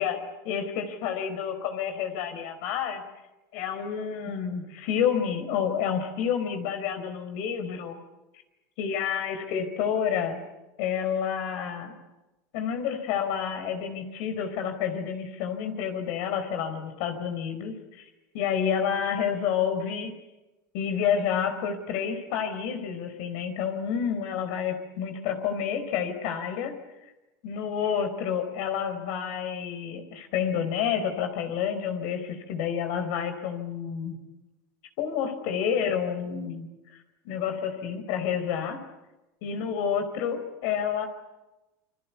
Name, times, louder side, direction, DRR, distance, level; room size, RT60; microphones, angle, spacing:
voice 1, 0.0-3.0 3.5-8.0 8.8-10.4 10.8-11.9 12.5-18.1 18.3-20.1 20.7-26.7 27.4-34.2 35.0-36.7 37.2-38.8 39.4-41.1, left 8 dB, 65° left, 7 dB, 4.2 m, -29 dB
29.0 x 22.5 x 8.3 m, 1.0 s
supercardioid pair, 115°, 9 cm